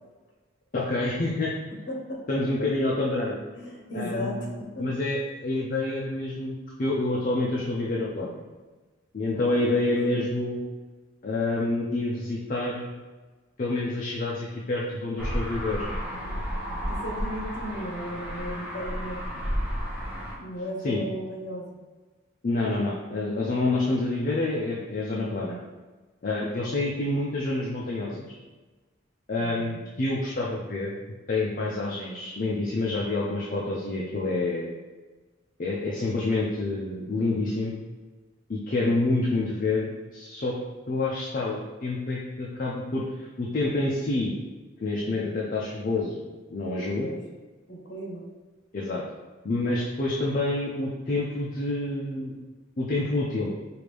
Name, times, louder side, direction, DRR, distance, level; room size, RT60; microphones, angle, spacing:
voice 1, 0.7-1.5 2.3-3.4 3.9-4.4 4.8-8.4 9.1-10.6 11.2-13.0 13.6-15.8 20.8-21.0 22.4-25.6 26.2-28.3 29.3-31.0 31.3-34.7 35.6-37.8 38.5-40.5 40.9-44.4 44.8-46.2 46.5-47.1 48.7-49.0 49.4-52.4 52.8-53.5, left 2 dB, 45° left, -4 dB, 0.5 m, -28 dB
voice 2, 1.9-2.2 3.5-4.9 9.3-10.2 15.7-19.6 20.4-21.7 45.0-45.4 47.0-47.2 47.7-48.2, equal, 65° left, -1 dB, 0.9 m, -37 dB
sound 1, 15.2-20.4, equal, 5° right, 0.9 m, -32 dB
4.9 x 2.5 x 3.3 m, 1.3 s
head